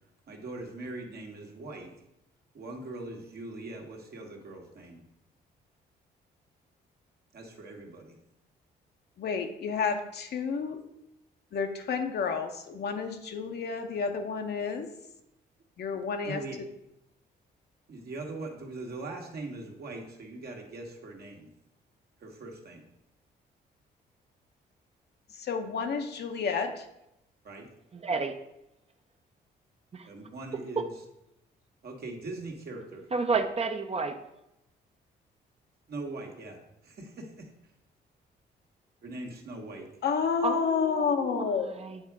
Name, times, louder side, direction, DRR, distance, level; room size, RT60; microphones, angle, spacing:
voice 1, 0.3-1.9 2.5-5.0 7.3-8.2 16.2-16.6 17.9-21.5 22.2-22.8 27.4-27.7 30.0-31.0 31.8-33.1 35.9-37.5 39.0-40.0, right 2 dB, 60° right, 1 dB, 1.5 m, -41 dB
voice 2, 9.2-10.8 11.5-14.9 15.8-16.7 25.3-26.9 40.0-41.7, left 5 dB, 65° left, 5 dB, 0.9 m, -30 dB
voice 3, 27.9-28.3 29.9-30.1 30.8-30.9 33.1-34.1 40.4-41.5 41.8-42.0, right 4 dB, 35° right, 7 dB, 0.7 m, -30 dB
8.1 x 3.6 x 4.8 m, 0.83 s
supercardioid pair, 70°, 19 cm